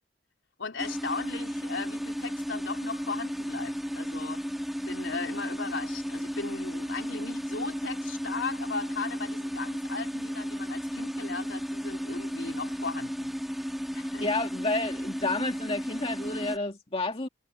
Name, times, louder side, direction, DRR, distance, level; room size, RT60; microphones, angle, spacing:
voice 1, 0.6-4.4 4.8-13.4 13.9-14.3, left 4 dB, 65° left, 4.0 m, -37 dB
sound 1, 0.8-16.6, equal, ahead, 2.9 m, -34 dB
voice 2, 14.2-17.3, left 2 dB, 30° left, 2.1 m, -30 dB
head